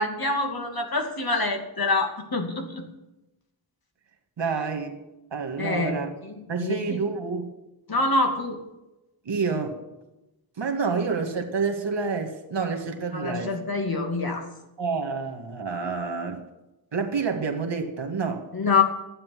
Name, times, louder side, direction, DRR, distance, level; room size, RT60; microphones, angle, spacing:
voice 1, 0.0-2.8 5.6-5.9 6.6-6.8 7.9-8.6 13.1-14.4 18.5-18.8, left 3 dB, 50° left, 3 dB, 2.7 m, -25 dB
voice 2, 4.4-4.9 5.3-6.1 6.5-7.5 9.3-9.8 10.6-13.6 14.8-16.4 16.9-18.5, right 5 dB, 65° right, 5 dB, 2.2 m, -28 dB
12.5 x 9.2 x 7.8 m, 0.95 s
wide cardioid pair, 80°, 46 cm